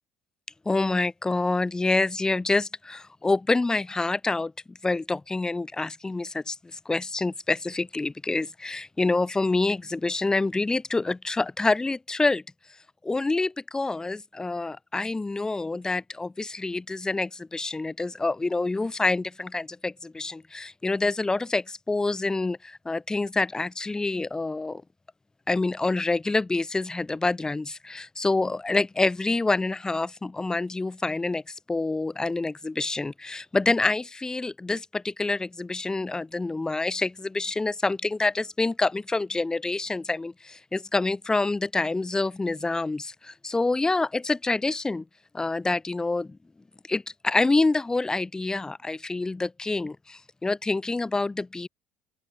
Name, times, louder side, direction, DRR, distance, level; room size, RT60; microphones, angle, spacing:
voice 1, 0.6-6.6 6.8-12.4 13.0-24.8 25.5-45.0 45.3-46.4 46.9-51.7, left 3 dB, 15° left, 1.6 m, -27 dB
open air
figure-of-eight pair, 60°, 5 cm